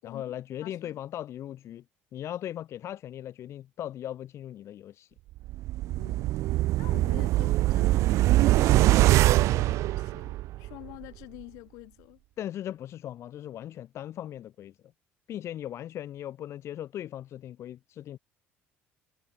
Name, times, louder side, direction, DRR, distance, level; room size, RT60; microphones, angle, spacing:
voice 1, 0.0-1.8 2.1-5.1 12.4-14.7 15.3-18.2, left 11 dB, 60° left, 2.7 m, -38 dB
voice 2, 0.6-1.0 5.9-6.3 6.8-12.2, left 24 dB, 85° left, 5.1 m, -47 dB
sound 1, 5.4-10.7 11.0-11.1, right 16 dB, 70° right, 0.5 m, -23 dB
supercardioid pair, 95°, 5 cm